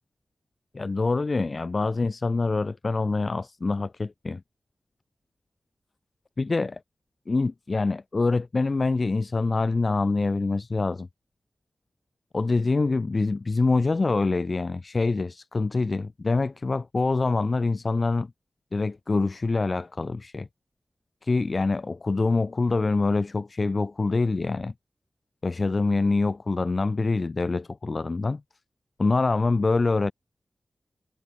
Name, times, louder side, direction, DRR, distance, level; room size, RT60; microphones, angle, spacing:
voice 1, 0.7-4.4 6.4-6.8 7.3-11.1 12.3-18.3 18.7-20.5 21.2-24.7 25.4-28.4 29.0-30.1, left 3 dB, 45° left, 2.4 m, -25 dB
wide cardioid pair, 75°, 0 cm